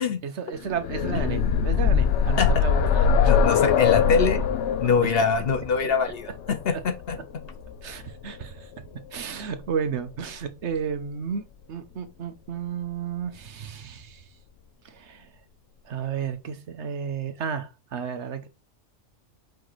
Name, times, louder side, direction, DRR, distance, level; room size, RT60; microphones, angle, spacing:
voice 1, 0.0-3.3 6.7-6.8 7.8-8.7 9.1-14.2 14.8-15.3 15.8-18.5, right 7 dB, 75° right, 1.2 m, -33 dB
sound 1, 0.6-8.4 9.6-9.7 10.1-10.2, left 6 dB, 80° left, 0.9 m, -23 dB
voice 2, 3.2-4.4 4.8-7.2, left 5 dB, 60° left, 0.9 m, -24 dB
5.0 x 4.9 x 3.9 m
omnidirectional pair, 1.2 m